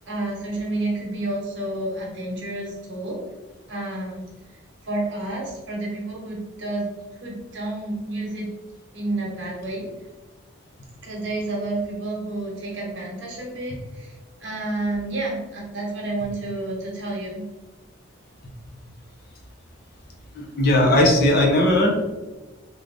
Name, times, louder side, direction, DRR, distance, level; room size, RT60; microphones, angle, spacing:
voice 1, 0.1-3.2 3.7-4.3 4.8-6.9 7.2-8.5 8.9-9.9 11.0-14.1 14.4-17.4, right 2 dB, 60° right, -2 dB, 1.1 m, -30 dB
voice 2, 20.3-22.0, left 1 dB, 50° left, 0 dB, 0.6 m, -18 dB
3.8 x 2.4 x 3.3 m, 1.2 s
head